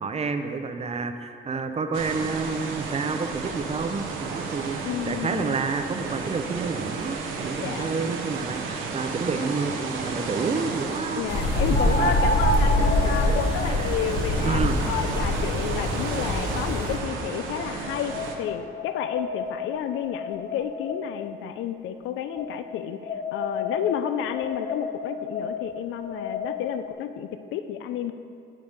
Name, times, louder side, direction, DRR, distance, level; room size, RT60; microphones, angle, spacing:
voice 1, 0.0-4.8 5.1-11.2 11.9-12.1 12.8-13.4 13.6-13.8 14.4-14.8, right 4 dB, 30° right, 8 dB, 0.5 m, -29 dB
sound 1, 1.9-18.4, right 4 dB, 90° right, 0.8 m, -32 dB
voice 2, 4.8-5.6 7.6-7.9 11.2-28.1, left 9 dB, 80° left, 10 dB, 0.4 m, -31 dB
sound 2, 11.3-17.0, left 1 dB, 60° left, 1.0 m, -25 dB
sound 3, 11.7-16.9 17.6-21.3 22.3-26.9, left 2 dB, 40° left, 0.7 m, -32 dB
7.4 x 4.7 x 5.0 m, 2.5 s
cardioid pair, 90°, 20 cm